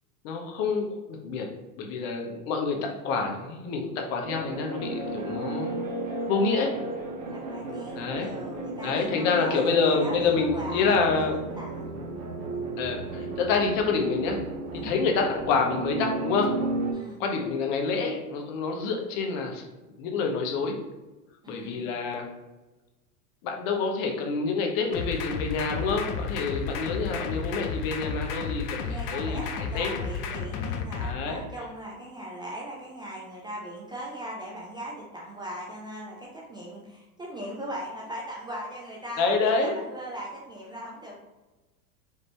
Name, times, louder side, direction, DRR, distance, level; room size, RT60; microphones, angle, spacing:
voice 1, 0.2-1.5 1.8-6.7 7.9-8.3 8.8-11.4 12.8-14.4 14.7-16.5 17.2-19.7 20.0-20.8 21.5-22.3 23.4-29.4 29.7-29.9 31.0-31.4 39.2-39.7, left 4 dB, 55° left, 2 dB, 1.1 m, -27 dB
voice 2, 2.8-3.2 7.3-11.9 14.7-14.9 16.9-17.2 21.4-21.9 28.8-41.2, right 1 dB, 10° right, -4 dB, 0.4 m, -39 dB
sound 1, 4.2-16.9, right 2 dB, 35° right, 0.9 m, -34 dB
sound 2, 24.9-31.1, left 5 dB, 85° left, 0.8 m, -32 dB
5.0 x 2.8 x 3.3 m, 1.1 s
supercardioid pair, 120°, 46 cm